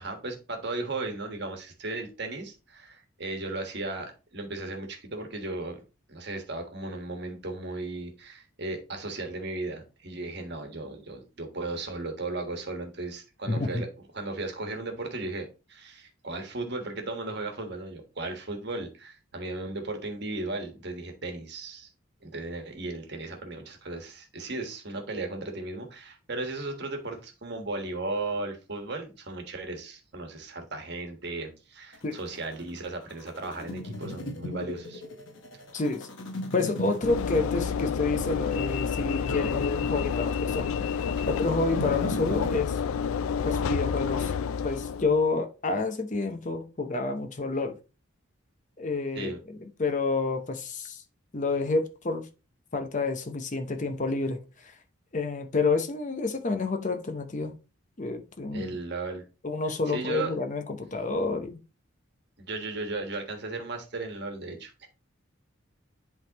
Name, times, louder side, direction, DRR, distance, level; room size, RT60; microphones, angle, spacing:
voice 1, 0.0-5.8 6.1-13.9 14.1-21.9 22.2-35.0 49.1-49.4 58.5-59.2 59.9-60.3 62.4-64.9, right 2 dB, 50° right, 1.4 m, -36 dB
voice 2, 13.5-13.8 32.0-32.2 35.7-36.1 36.5-40.7 41.3-42.8 43.4-44.3 44.6-47.8 48.8-51.0 51.3-52.3 52.7-54.7 55.1-57.6 58.0-58.8 59.4-61.6, left 3 dB, 35° left, 0.7 m, -29 dB
sound 1, 31.9-42.6, left 1 dB, 60° left, 1.1 m, -39 dB
Train / Engine / Alarm, 37.0-45.3, left 6 dB, 85° left, 0.3 m, -29 dB
10.5 x 3.6 x 2.9 m
head